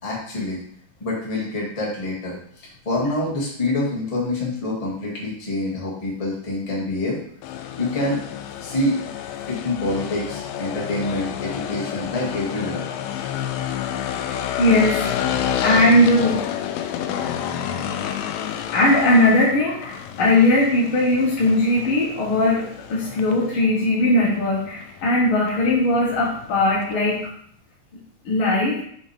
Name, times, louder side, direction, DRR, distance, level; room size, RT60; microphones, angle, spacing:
voice 1, 0.0-0.6 1.0-7.2 7.8-8.2 8.6-9.0 9.5-12.9, left 2 dB, 35° left, -5 dB, 0.5 m, -26 dB
sound 1, 7.4-27.3, left 9 dB, 80° left, 2.2 m, -30 dB
voice 2, 14.6-16.4 18.7-27.2 28.2-28.8, left 1 dB, 55° left, -7 dB, 1.5 m, -19 dB
5.9 x 5.3 x 3.4 m, 0.63 s
omnidirectional pair, 4.2 m